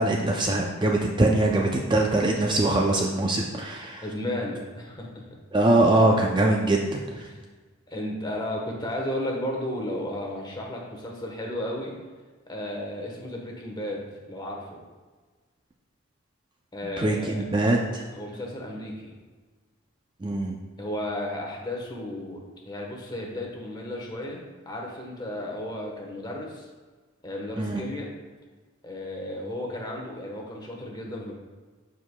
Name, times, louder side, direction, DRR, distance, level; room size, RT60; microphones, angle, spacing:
voice 1, 0.0-4.0 5.5-7.0 17.0-18.0 20.2-20.5 27.6-27.8, right 2 dB, 20° right, 0 dB, 0.4 m, -22 dB
voice 2, 4.0-5.1 7.1-7.4 7.9-11.9 12.5-14.8 16.7-17.4 18.1-19.1 20.8-26.7 27.2-28.1 28.8-31.3, left 1 dB, 20° left, -1 dB, 1.1 m, -34 dB
12.5 x 4.8 x 2.2 m, 1.4 s
head